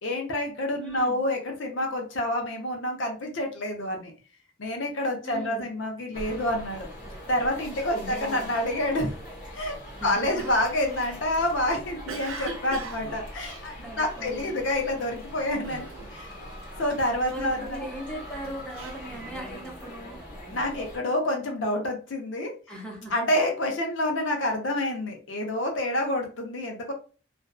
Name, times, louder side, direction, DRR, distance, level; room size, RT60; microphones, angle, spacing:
voice 1, 0.0-4.1 4.6-6.9 7.3-9.1 9.6-9.8 10.0-16.3 16.8-17.8 20.5-22.5 23.1-26.9, left 1 dB, 70° left, 2 dB, 0.6 m, -28 dB
voice 2, 0.8-1.2 5.2-5.7 7.9-8.5 10.0-10.5 13.8-14.6 17.3-20.2 22.7-23.2, right 1 dB, 5° left, -1 dB, 0.6 m, -38 dB
sound 1, 6.1-21.0, equal, 45° left, 0.8 m, -42 dB
Cough, 10.4-14.5 14.9-15.2 15.6-16.4 16.6-17.8 18.3-19.8, right 4 dB, 85° right, 0.5 m, -41 dB
2.5 x 2.2 x 2.3 m, 0.36 s
head